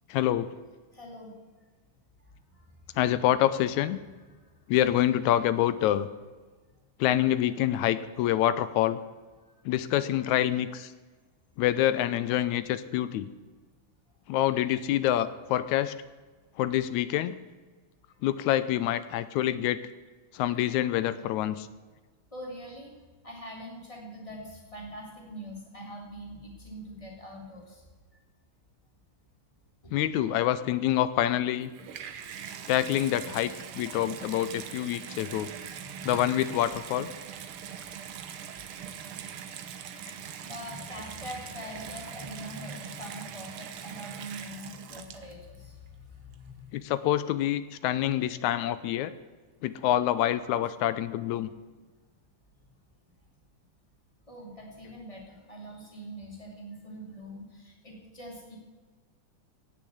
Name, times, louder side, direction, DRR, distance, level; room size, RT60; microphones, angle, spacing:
voice 1, 0.1-0.5 3.0-4.0 4.7-6.1 7.0-9.0 9.7-10.9 11.6-13.3 14.3-15.9 16.6-17.4 18.2-19.8 20.3-21.7 29.9-31.7 32.7-35.5 36.0-37.1 46.7-49.1 49.6-51.5, left 12 dB, 80° left, 14 dB, 1.9 m, -26 dB
voice 2, 0.9-1.3 2.5-2.7 9.5-9.6 22.3-22.9 23.2-27.8 31.7-31.9 32.5-32.6 35.7-36.3 40.4-46.7 54.3-58.6, equal, 10° left, -1 dB, 3.2 m, -43 dB
Water tap faucet / Bathtub (filling or washing), 31.5-45.6 46.3-46.4, right 8 dB, 65° right, 1.4 m, -42 dB
17.5 x 6.7 x 8.3 m, 1.3 s
omnidirectional pair, 3.6 m